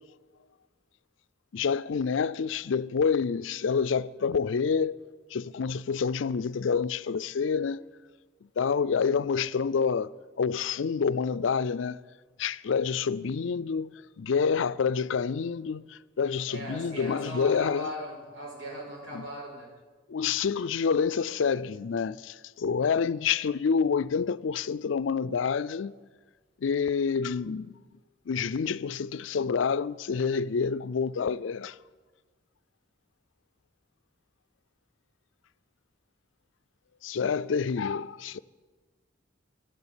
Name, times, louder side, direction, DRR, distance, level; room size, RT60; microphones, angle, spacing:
voice 1, 1.5-5.0 5.3-7.8 8.6-12.0 12.4-17.9 19.1-19.3 20.1-25.9 26.6-27.8 28.3-31.8 37.0-38.4, left 6 dB, 75° left, 0.4 m, -28 dB
voice 2, 16.5-19.7, equal, 70° right, 6.1 m, -38 dB
12.5 x 12.5 x 8.9 m
head